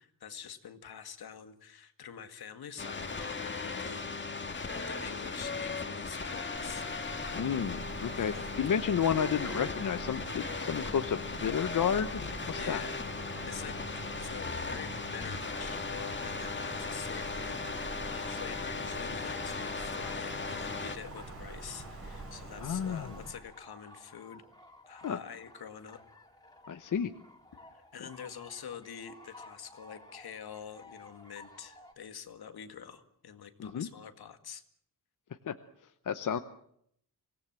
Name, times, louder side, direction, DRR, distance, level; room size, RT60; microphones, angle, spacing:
voice 1, 0.0-4.3 4.7-6.8 8.1-8.5 12.6-13.0 13.5-13.8 14.2-24.4 24.9-26.0 27.7-34.6, left 7 dB, 75° left, 9 dB, 2.0 m, -46 dB
sound 1, 2.8-21.0, left 4 dB, 30° left, 2.0 m, -37 dB
Wind, 6.5-23.3, right 2 dB, 35° right, 4.6 m, -45 dB
voice 2, 7.3-12.2 12.5-12.8 22.6-23.1 25.0-25.2 26.7-27.1 33.6-33.9 35.4-35.5 36.0-36.4, left 8 dB, 55° left, 9 dB, 1.0 m, -31 dB
sound 2, 14.7-31.9, left 2 dB, 10° left, 3.4 m, -54 dB
25.0 x 18.5 x 7.6 m, 0.69 s
wide cardioid pair, 165°, 38 cm